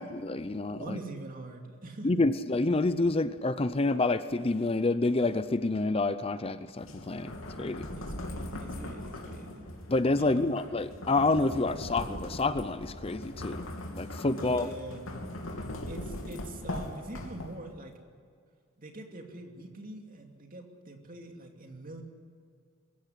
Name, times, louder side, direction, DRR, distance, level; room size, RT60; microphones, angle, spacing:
voice 1, 0.0-1.0 2.0-7.9 9.9-13.7 14.0-14.7, left 2 dB, 30° left, 12 dB, 0.6 m, -28 dB
voice 2, 0.7-2.2 8.0-9.6 10.1-10.6 14.3-15.0 15.9-17.9 18.8-22.0, right 1 dB, 40° right, 3 dB, 2.7 m, -44 dB
sound 1, 6.8-17.8, left 1 dB, 80° left, 3.1 m, -40 dB
22.5 x 16.0 x 10.0 m, 2.2 s
head